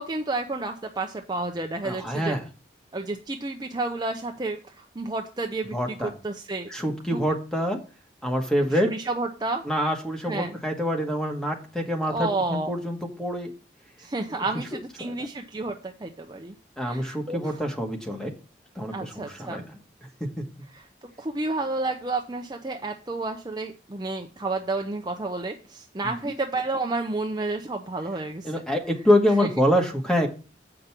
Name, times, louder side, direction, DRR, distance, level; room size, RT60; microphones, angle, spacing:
voice 1, 0.0-2.3 2.9-6.7 7.1-7.2 8.7-9.7 10.2-10.6 12.1-12.7 14.0-16.5 16.9-17.6 18.9-19.6 20.7-20.8 21.2-28.5 29.4-29.5, right 2 dB, 25° right, 3 dB, 0.6 m, -31 dB
voice 2, 1.8-2.4 5.7-6.1 6.7-7.8 8.2-8.9 9.6-13.5 14.3-14.4 15.0-15.3 16.8-18.3 18.7-19.6 20.4-20.5 28.4-30.3, equal, 5° left, 3 dB, 1.3 m, -26 dB
7.8 x 5.2 x 5.8 m, 0.36 s
head